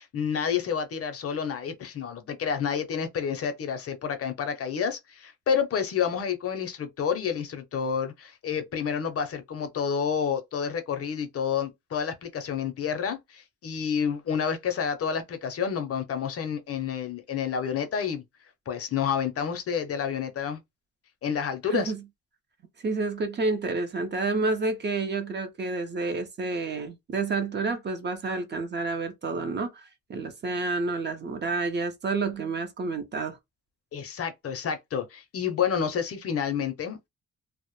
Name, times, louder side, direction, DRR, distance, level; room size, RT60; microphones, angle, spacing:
voice 1, 0.0-18.2 18.7-20.6 21.2-21.9 33.9-37.1, left 7 dB, 50° left, 0.5 m, -29 dB
voice 2, 21.6-22.0 22.8-33.4, right 3 dB, 35° right, 0.5 m, -29 dB
2.1 x 2.0 x 3.0 m
cardioid pair, 135°, 31 cm